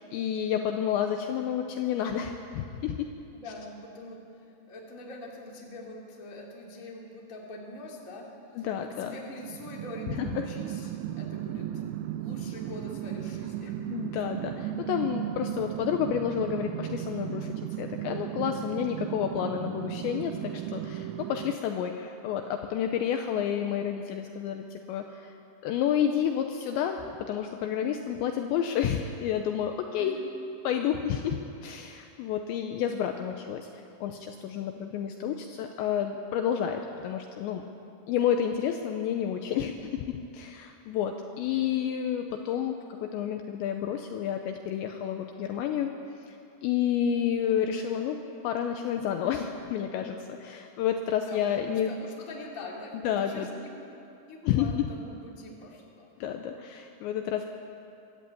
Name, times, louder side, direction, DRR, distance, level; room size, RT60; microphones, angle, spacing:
voice 1, 0.0-3.0 8.6-9.1 10.2-10.5 13.9-25.4 25.6-30.2 30.6-33.7 34.0-37.6 38.1-45.9 46.3-46.4 46.6-48.2 48.4-51.9 53.0-53.5 54.4-54.9 56.2-57.4, left 9 dB, 80° left, 5 dB, 2.7 m, -30 dB
voice 2, 3.3-4.2 4.7-8.3 8.6-10.9 11.2-11.8 12.2-13.8 29.9-30.2 51.2-53.7 54.3-56.1, left 1 dB, 25° left, -2 dB, 2.1 m, -43 dB
sound 1, 9.4-21.6, right 11 dB, 85° right, 2.5 m, -35 dB
23.0 x 13.5 x 8.7 m, 2.7 s
omnidirectional pair, 5.8 m